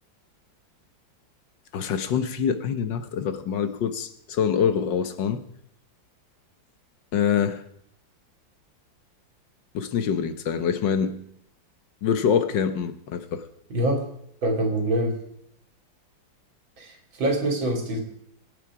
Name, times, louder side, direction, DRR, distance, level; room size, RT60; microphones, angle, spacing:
voice 1, 1.7-5.4 7.1-7.6 9.7-11.2 12.0-13.4, left 7 dB, 70° left, 1.6 m, -25 dB
voice 2, 13.7-14.0 14.4-15.2 16.8-18.0, right 1 dB, 80° right, 3.5 m, -25 dB
23.5 x 8.9 x 4.8 m
omnidirectional pair, 2.1 m